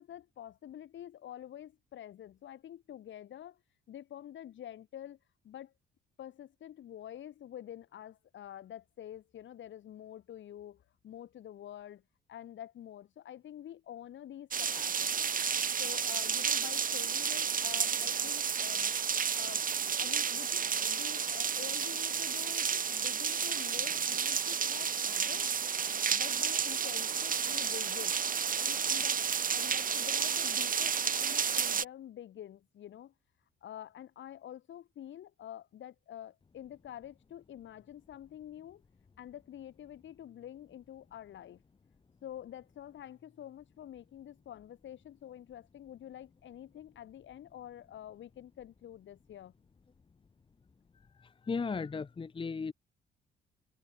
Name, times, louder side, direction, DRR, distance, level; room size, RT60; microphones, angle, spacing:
voice 1, 0.0-3.6 3.9-5.2 5.4-5.7 6.2-12.0 12.3-15.3 15.8-18.9 19.3-25.5 26.1-28.2 28.6-29.2 29.5-33.1 33.6-38.8 39.2-41.6 42.2-49.5, left 11 dB, 70° left, 6.3 m, -48 dB
sound 1, 14.5-31.8, right 7 dB, 45° right, 2.0 m, -31 dB
voice 2, 51.2-52.7, left 5 dB, 25° left, 0.9 m, -36 dB
cardioid pair, 90°, 20 cm